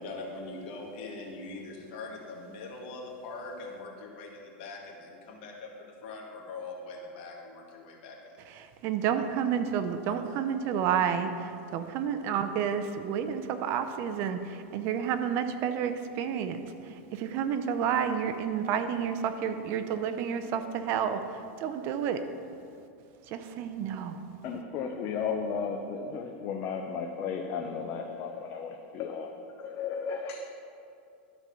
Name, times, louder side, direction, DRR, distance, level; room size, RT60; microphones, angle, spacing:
voice 1, 0.0-5.7 6.0-8.4 10.0-10.2, left 3 dB, 60° left, -1 dB, 2.0 m, -42 dB
voice 2, 8.5-16.6 17.1-21.2 21.6-22.2 23.3-24.2, right 8 dB, 45° right, 9 dB, 0.6 m, -30 dB
voice 3, 24.4-29.3 29.6-30.4, left 6 dB, 40° left, 2 dB, 0.7 m, -34 dB
12.5 x 4.5 x 5.6 m, 2.5 s
supercardioid pair, 140°, 6 cm